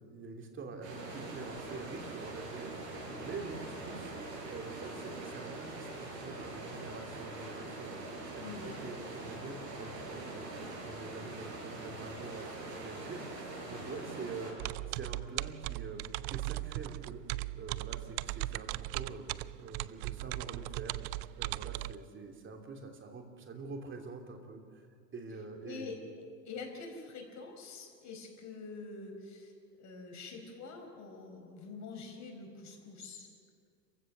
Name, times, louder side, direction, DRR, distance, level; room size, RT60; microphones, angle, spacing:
voice 1, 0.0-4.1 4.5-10.5 10.8-14.5 14.9-17.2 17.6-19.3 19.6-24.8 25.1-25.9, right 4 dB, 25° right, 3 dB, 3.0 m, -46 dB
sound 1, 0.8-14.5, right 2 dB, 70° right, 7.0 m, -43 dB
voice 2, 8.4-8.7 25.6-26.0 26.4-33.3, left 4 dB, 35° left, 3 dB, 4.9 m, -46 dB
sound 2, 14.6-21.9, right 18 dB, 45° right, 0.4 m, -38 dB
28.0 x 15.5 x 6.7 m, 2.2 s
hypercardioid pair, 115°, 49 cm